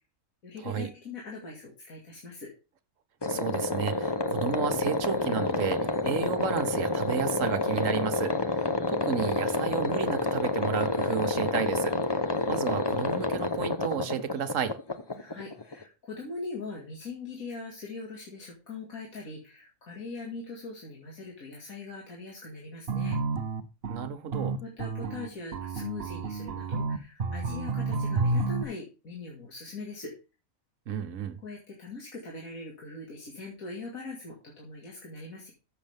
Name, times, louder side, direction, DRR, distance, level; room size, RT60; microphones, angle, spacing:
voice 1, 0.4-2.5 15.2-23.2 24.6-30.1 31.4-35.5, left 3 dB, 80° left, 2.5 m, -41 dB
sound 1, 3.2-15.8, left 3 dB, 25° left, 0.7 m, -29 dB
voice 2, 3.3-14.7 23.9-24.6 30.9-31.4, right 7 dB, 65° right, 1.4 m, -32 dB
sound 2, 22.9-28.6, right 3 dB, 50° right, 1.1 m, -30 dB
13.5 x 7.3 x 3.5 m
omnidirectional pair, 1.4 m